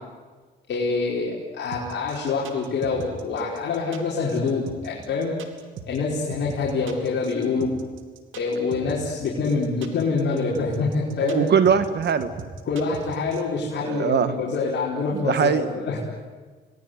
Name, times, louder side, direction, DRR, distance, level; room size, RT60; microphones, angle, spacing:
voice 1, 0.7-5.3 5.9-7.7 8.4-11.5 12.7-16.0, left 4 dB, 65° left, -5 dB, 5.1 m, -26 dB
sound 1, 1.7-13.4, right 7 dB, 80° right, 2.8 m, -39 dB
voice 2, 11.2-12.3 13.9-14.3 15.2-15.7, right 7 dB, 60° right, 11 dB, 1.6 m, -21 dB
27.5 x 20.0 x 9.5 m, 1.4 s
cardioid pair, 90°, 20 cm